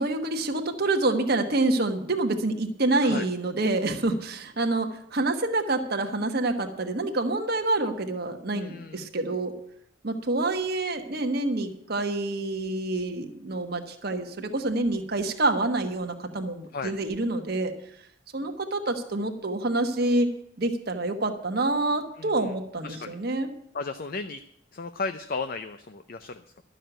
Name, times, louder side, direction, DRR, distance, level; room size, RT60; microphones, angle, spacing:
voice 1, 0.0-9.5 10.0-17.7 18.3-20.3 20.6-23.5, right 2 dB, 50° right, 4 dB, 1.3 m, -27 dB
voice 2, 8.5-9.1 16.7-17.0 22.2-22.5 22.8-23.1 23.7-24.4 24.7-26.6, left 4 dB, 45° left, 9 dB, 0.5 m, -35 dB
12.0 x 6.5 x 9.0 m, 0.71 s
head